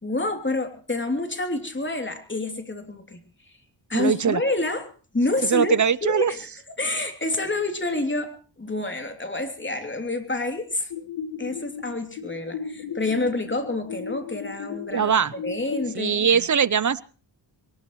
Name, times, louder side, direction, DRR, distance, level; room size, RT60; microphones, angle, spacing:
voice 1, 0.0-3.2 3.9-4.9 5.1-5.7 6.0-6.4 6.7-10.9 11.4-16.4, left 2 dB, 25° left, 6 dB, 3.1 m, -28 dB
voice 2, 3.9-4.4 5.4-6.3 14.9-15.3 15.9-17.0, right 7 dB, 40° right, 19 dB, 0.8 m, -21 dB
sound 1, 10.9-15.9, left 7 dB, 90° left, 1.6 m, -36 dB
22.5 x 19.5 x 3.2 m, 0.38 s
cardioid pair, 70°, 45 cm